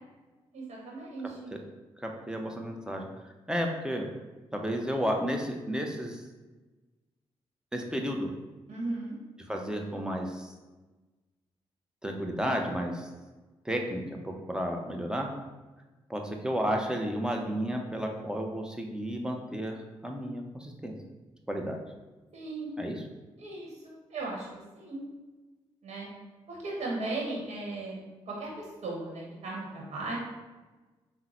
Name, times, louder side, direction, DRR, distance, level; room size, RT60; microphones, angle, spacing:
voice 1, 0.5-1.5 8.7-9.1 22.3-22.7 23.4-24.5 24.7-25.0 25.8-26.1 26.5-28.0 28.3-30.2, right 2 dB, 60° right, -3 dB, 1.1 m, -36 dB
voice 2, 2.0-3.0 3.5-4.1 4.5-6.2 7.7-8.3 9.5-10.5 12.0-13.1 13.6-15.3 16.1-20.9 21.5-21.8 22.8-23.0, equal, 5° right, 2 dB, 0.7 m, -32 dB
3.8 x 2.1 x 4.3 m, 1.2 s
supercardioid pair, 45°, 12 cm